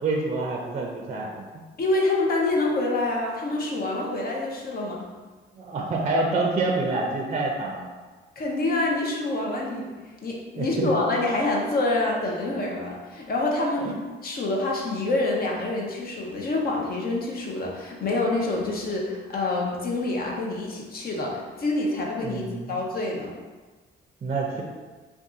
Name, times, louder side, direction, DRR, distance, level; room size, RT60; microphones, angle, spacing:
voice 1, 0.0-1.6 5.5-7.9 10.6-11.1 13.8-14.0 22.2-22.8 24.2-24.6, right 3 dB, 35° right, -1 dB, 0.5 m, -27 dB
voice 2, 1.8-5.0 8.4-9.9 10.2-13.9 14.2-22.4 22.7-23.3, left 2 dB, 50° left, -1 dB, 0.7 m, -26 dB
2.6 x 2.4 x 3.6 m, 1.3 s
cardioid pair, 90°, 20 cm